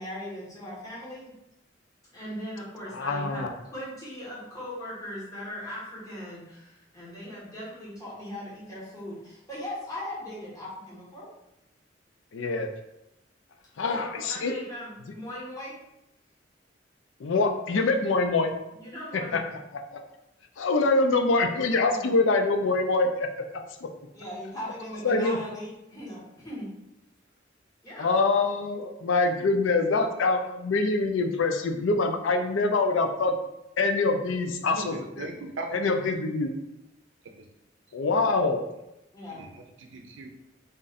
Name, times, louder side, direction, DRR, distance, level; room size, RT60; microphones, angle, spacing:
voice 1, 0.0-1.3 2.1-11.3 13.9-15.7 18.8-19.6 21.9-22.2 24.1-26.7 27.8-28.1 39.1-39.5, left 1 dB, 20° left, -8 dB, 1.2 m, -39 dB
voice 2, 2.9-3.5 12.3-12.7 13.8-14.5 17.2-18.5 19.3-19.4 19.9-20.0 20.6-23.3 25.0-25.4 28.0-33.3 33.8-35.3 35.7-36.5 37.9-38.6, left 3 dB, 90° left, 5 dB, 0.5 m, -24 dB
voice 3, 34.7-35.8 39.3-40.3, right 2 dB, 80° right, 2 dB, 0.5 m, -38 dB
3.8 x 2.5 x 4.0 m, 0.88 s
head